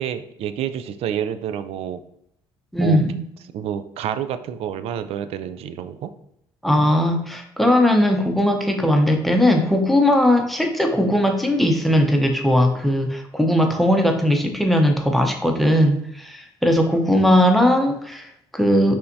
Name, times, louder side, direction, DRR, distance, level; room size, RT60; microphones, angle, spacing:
voice 1, 0.0-2.0 2.8-3.0 3.5-6.1, right 9 dB, 70° right, 12 dB, 0.4 m, -28 dB
voice 2, 2.7-3.2 6.6-19.0, left 1 dB, ahead, 3 dB, 0.8 m, -18 dB
5.5 x 3.5 x 2.7 m, 0.75 s
cardioid pair, 85°, 11 cm